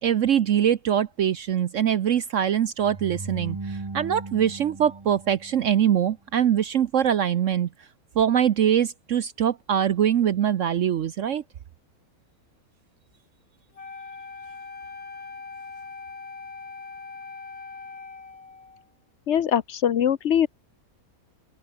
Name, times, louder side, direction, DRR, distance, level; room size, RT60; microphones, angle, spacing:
voice 1, 0.0-7.7 8.2-11.4, right 9 dB, 60° right, 1.0 m, -23 dB
sound 1, 2.8-6.0, right 3 dB, 20° right, 1.1 m, -37 dB
Wind instrument woodwind instrument, 13.7-18.9, left 4 dB, 75° left, 3.3 m, -41 dB
voice 2, 19.3-20.5, left 9 dB, 55° left, 1.0 m, -22 dB
open air
omnidirectional pair, 1.5 m